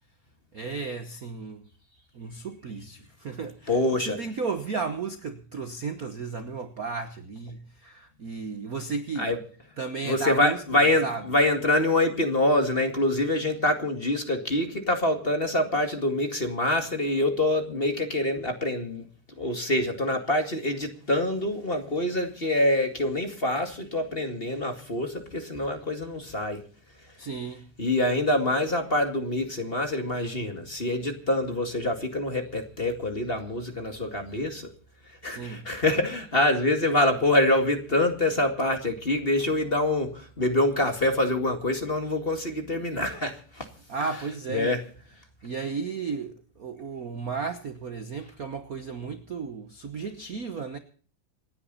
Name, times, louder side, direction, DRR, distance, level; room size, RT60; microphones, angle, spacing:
voice 1, 0.5-1.6 2.1-9.3 9.8-11.3 27.2-27.7 35.3-35.7 43.9-44.8 45.4-50.8, right 4 dB, 65° right, 0.8 m, -34 dB
voice 2, 3.7-4.2 9.2-9.4 10.0-19.1 19.4-26.6 27.8-34.7 35.2-43.7 44.5-44.8, left 1 dB, 20° left, 2.0 m, -25 dB
27.5 x 10.0 x 4.1 m
omnidirectional pair, 3.3 m